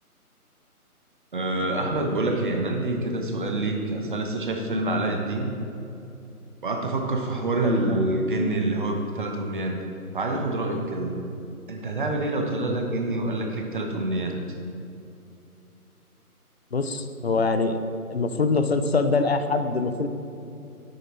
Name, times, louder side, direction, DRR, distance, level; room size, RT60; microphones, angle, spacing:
voice 1, 1.3-5.5 6.6-9.8 10.1-11.2 11.7-14.4, right 2 dB, 35° right, 3 dB, 1.0 m, -26 dB
voice 2, 16.7-17.8 18.1-20.1, left 3 dB, 45° left, 9 dB, 0.6 m, -24 dB
9.8 x 8.2 x 4.2 m, 2.7 s
figure-of-eight pair, 155°, 45 cm